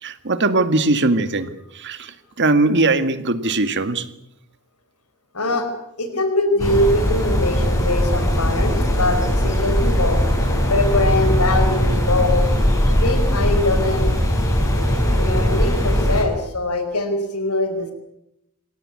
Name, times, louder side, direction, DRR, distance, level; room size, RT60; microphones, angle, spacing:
voice 1, 0.0-4.1, right 2 dB, 55° right, 1.9 m, -20 dB
voice 2, 5.3-5.7 6.0-10.2 10.7-12.5 13.0-14.1 15.0-17.9, left 1 dB, 85° left, 4.9 m, -22 dB
sound 1, 6.6-16.2, equal, 15° left, 7.1 m, -19 dB
27.5 x 17.5 x 9.7 m
head